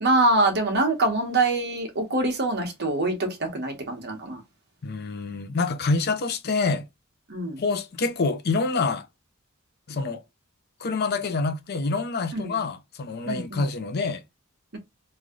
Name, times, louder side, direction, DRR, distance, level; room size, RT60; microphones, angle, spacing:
voice 1, 0.0-4.4 7.3-7.6 12.3-12.5 13.3-13.6, right 2 dB, 50° right, 1.2 m, -24 dB
voice 2, 4.8-6.8 7.6-9.1 9.9-10.2 10.8-14.2, left 3 dB, 50° left, 0.5 m, -26 dB
3.1 x 2.7 x 3.7 m
head